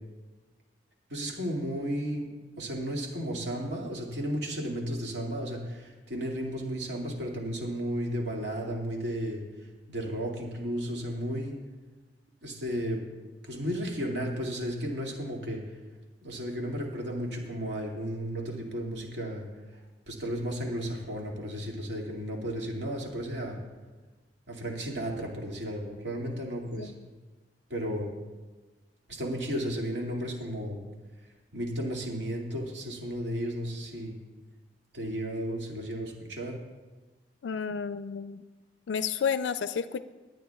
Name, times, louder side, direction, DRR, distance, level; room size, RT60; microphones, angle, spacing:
voice 1, 1.1-2.3 2.6-11.5 12.4-13.0 13.4-15.8 16.2-19.8 20.1-23.6 24.5-26.9 27.7-28.1 29.1-30.8 31.2-34.1 34.9-36.6, equal, 70° right, -1 dB, 2.2 m, -34 dB
voice 2, 37.4-38.4 38.9-40.0, left 6 dB, 90° left, 12 dB, 0.4 m, -31 dB
24.5 x 9.1 x 2.3 m, 1.3 s
head